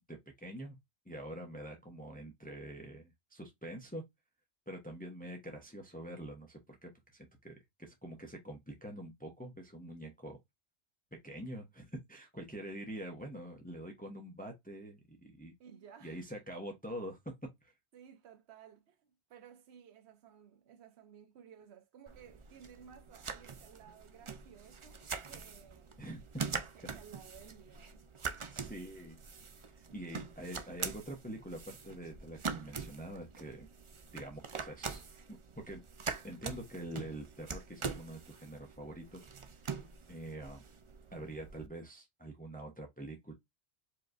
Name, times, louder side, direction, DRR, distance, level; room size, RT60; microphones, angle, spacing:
voice 1, 0.1-0.8 1.1-4.0 4.7-10.4 11.2-15.5 16.0-17.2 17.6-17.7 26.0-26.2 28.5-29.2 29.7-33.7 34.1-35.8 36.2-39.5 40.1-40.6 41.1-43.3, right 1 dB, 10° left, 0.9 m, -45 dB
voice 2, 15.6-16.4 17.9-26.0 26.6-28.1 29.9-30.1, right 8 dB, 75° right, 1.0 m, -57 dB
sound 1, 22.1-41.7, right 5 dB, 40° right, 0.5 m, -44 dB
4.7 x 3.1 x 2.5 m
omnidirectional pair, 1.1 m